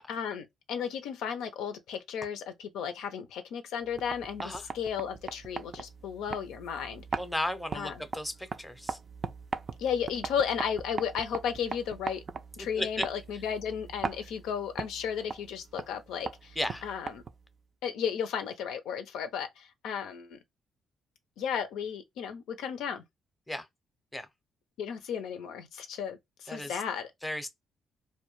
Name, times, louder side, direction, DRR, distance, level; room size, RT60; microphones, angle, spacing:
voice 1, 0.1-7.0 7.7-8.0 9.8-12.2 12.6-17.2 17.8-20.4 21.4-23.0 24.8-27.1, left 7 dB, 85° left, 0.5 m, -34 dB
sound 1, 3.8-17.6, right 4 dB, 40° right, 0.4 m, -40 dB
voice 2, 7.2-8.3 8.6-9.0 12.7-12.9 16.6-16.8 23.5-23.6 24.1-24.3 26.5-26.7 27.2-27.5, left 1 dB, 5° left, 0.6 m, -34 dB
2.2 x 2.2 x 3.0 m
cardioid pair, 90°, 0 cm